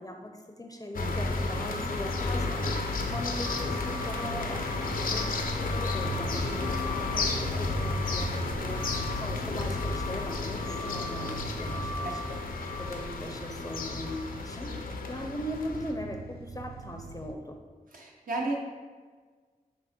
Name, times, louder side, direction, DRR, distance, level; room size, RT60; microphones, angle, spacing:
voice 1, 0.0-5.3 5.6-12.2 12.6-17.6, left 1 dB, 25° left, 3 dB, 0.5 m, -40 dB
sound 1, 0.9-15.9, left 3 dB, 65° left, 0.5 m, -32 dB
sound 2, 6.0-17.3, right 4 dB, 85° right, 0.4 m, -42 dB
voice 2, 7.1-7.6 12.0-12.1 17.9-18.5, right 2 dB, 65° right, -1 dB, 1.0 m, -34 dB
5.9 x 2.1 x 4.2 m, 1.5 s
cardioid pair, 50°, 15 cm